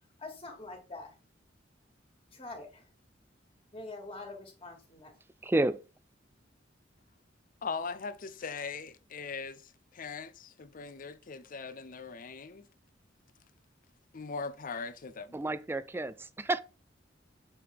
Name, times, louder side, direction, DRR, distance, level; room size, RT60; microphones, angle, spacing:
voice 1, 0.2-1.1 2.3-2.8 3.7-5.1, left 2 dB, 30° left, 2.0 m, -44 dB
voice 2, 5.4-5.8 15.3-16.6, right 2 dB, 10° right, 0.3 m, -30 dB
voice 3, 7.6-12.7 14.1-15.4, left 5 dB, 45° left, 0.6 m, -40 dB
6.9 x 4.7 x 3.5 m
head